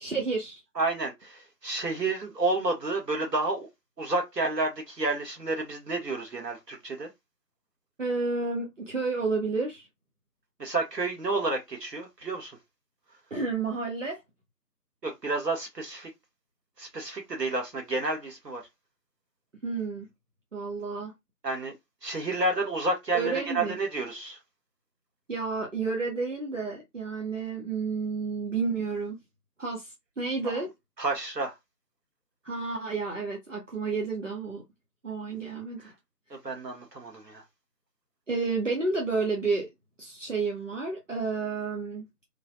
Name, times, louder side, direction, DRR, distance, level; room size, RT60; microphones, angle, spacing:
voice 1, 0.0-0.6 8.0-9.9 13.3-14.2 19.6-20.1 20.5-21.1 23.1-23.8 25.3-29.2 29.6-30.7 32.4-34.6 35.0-35.8 38.3-39.7 40.0-42.0, right 4 dB, 50° right, 0.8 m, -30 dB
voice 2, 0.7-3.7 4.0-7.1 10.6-12.6 15.0-16.1 16.8-18.6 21.4-21.7 22.0-24.4 30.4-30.6 31.0-31.5 36.3-37.4, right 2 dB, 80° right, 1.4 m, -30 dB
3.1 x 2.1 x 2.5 m
figure-of-eight pair, 170°, 48 cm